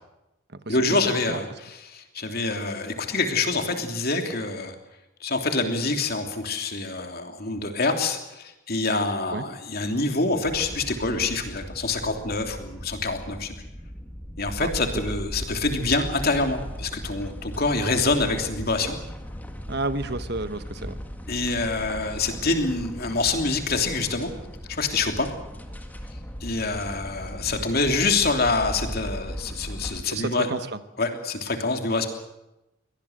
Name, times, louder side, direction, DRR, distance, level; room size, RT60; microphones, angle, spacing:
voice 1, 0.7-4.7 5.2-13.5 14.4-19.0 21.3-24.3 24.7-25.3 26.4-30.5 31.0-32.1, left 3 dB, 50° left, 5 dB, 3.0 m, -26 dB
sound 1, 10.4-30.0, equal, 10° left, 1.8 m, -37 dB
voice 2, 19.7-21.0 30.1-30.8, right 2 dB, 50° right, 12 dB, 1.2 m, -30 dB
23.5 x 18.0 x 8.0 m, 0.92 s
head